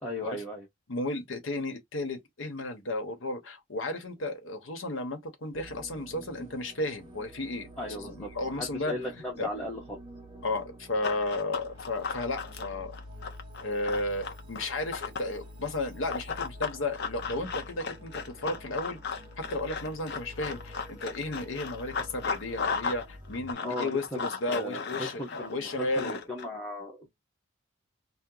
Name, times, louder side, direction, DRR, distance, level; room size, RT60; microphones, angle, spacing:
voice 1, 0.0-0.7 7.8-10.0 23.6-27.1, left 1 dB, 10° left, 0.9 m, -37 dB
voice 2, 0.9-9.5 10.4-12.9 13.6-19.0 19.4-25.2 25.5-26.2, left 2 dB, 70° left, 0.9 m, -34 dB
sound 1, 5.5-23.5, left 1 dB, 20° right, 0.9 m, -48 dB
Run, 11.0-15.3 16.1-23.0 23.3-26.4, left 5 dB, 50° left, 0.6 m, -35 dB
2.8 x 2.1 x 3.7 m
head